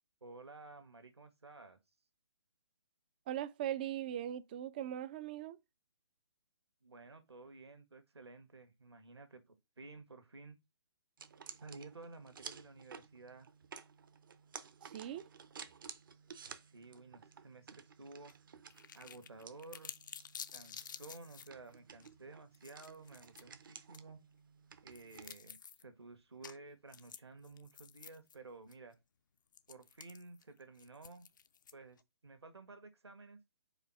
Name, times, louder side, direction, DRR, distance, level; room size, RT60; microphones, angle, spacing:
voice 1, 0.2-1.8 6.8-9.4 9.8-10.6 11.5-13.5 16.7-18.3 18.9-19.9 20.5-24.2 24.8-28.9 29.7-31.3 31.7-33.4, right 3 dB, 70° right, 1.5 m, -53 dB
voice 2, 3.3-5.6 14.8-15.2, right 11 dB, 20° right, 0.3 m, -40 dB
sound 1, 11.2-25.4, right 6 dB, 50° right, 0.7 m, -54 dB
sound 2, 18.3-18.4 18.7-21.5 22.0-22.1 22.5-23.4 23.9-24.0 24.9-25.8 26.4-26.6 26.9-28.4 28.7-28.8 29.5-32.0, left 7 dB, 45° left, 0.4 m, -51 dB
4.9 x 3.9 x 5.8 m
figure-of-eight pair, 135°, 14 cm